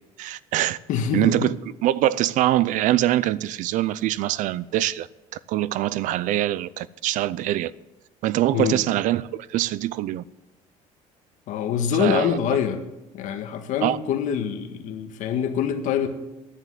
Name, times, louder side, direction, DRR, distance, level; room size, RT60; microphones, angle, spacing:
voice 1, 0.2-0.8 1.1-1.6 1.8-5.1 5.5-7.7 8.2-10.2 12.0-12.4 13.8-14.0, right 14 dB, 65° right, 0.5 m, -23 dB
voice 2, 0.9-1.5 8.5-8.8 11.5-12.8 13.1-16.1, left 8 dB, 60° left, 1.6 m, -25 dB
11.0 x 9.9 x 7.9 m
cardioid pair, 150°, 14 cm